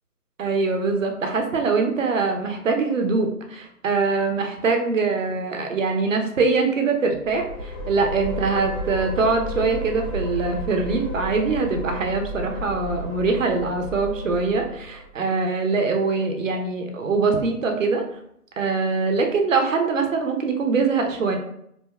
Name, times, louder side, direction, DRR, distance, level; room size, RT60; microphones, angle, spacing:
voice 1, 0.4-18.0 18.6-21.4, right 4 dB, 55° right, 3 dB, 0.5 m, -23 dB
sound 1, 7.2-15.1, left 1 dB, ahead, 0.5 m, -32 dB
2.7 x 2.1 x 2.2 m, 0.72 s
figure-of-eight pair, 155°, 46 cm